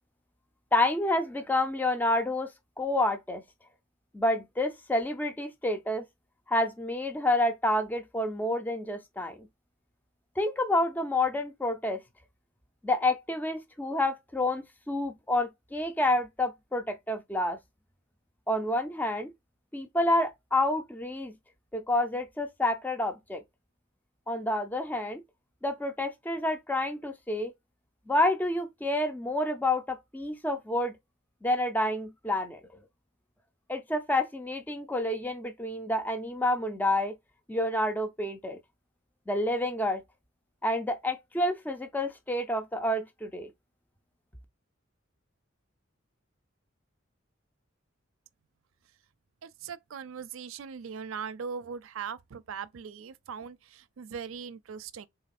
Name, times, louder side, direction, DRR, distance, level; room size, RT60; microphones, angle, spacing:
voice 1, 0.7-3.4 4.1-6.0 6.5-9.5 10.4-12.0 12.8-17.6 18.5-19.3 19.7-21.3 21.7-23.4 24.3-25.2 25.6-27.5 28.1-30.9 31.4-32.6 33.7-37.1 37.5-38.6 39.3-40.0 40.6-43.5, left 1 dB, 10° left, 0.4 m, -29 dB
voice 2, 49.4-55.1, right 6 dB, 85° right, 0.4 m, -40 dB
4.0 x 3.2 x 4.1 m
head